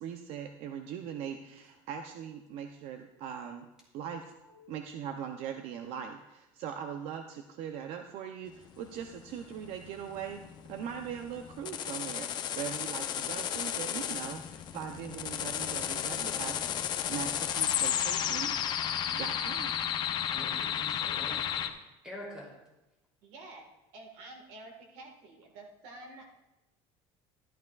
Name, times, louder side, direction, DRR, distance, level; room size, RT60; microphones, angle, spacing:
voice 1, 0.0-3.7 3.9-4.3 4.7-10.4 10.7-16.6 17.1-18.7 19.1-19.7, right 8 dB, 65° right, 6 dB, 0.6 m, -40 dB
voice 2, 4.4-4.7 20.3-21.7 22.0-22.5, left 1 dB, 5° right, -3 dB, 3.0 m, -46 dB
sound 1, 8.7-21.7, left 9 dB, 40° left, 0.6 m, -33 dB
voice 3, 23.2-23.7 23.9-26.3, right 2 dB, 80° right, 3 dB, 1.6 m, -49 dB
13.0 x 12.0 x 2.4 m, 0.97 s
cardioid pair, 155°, 11 cm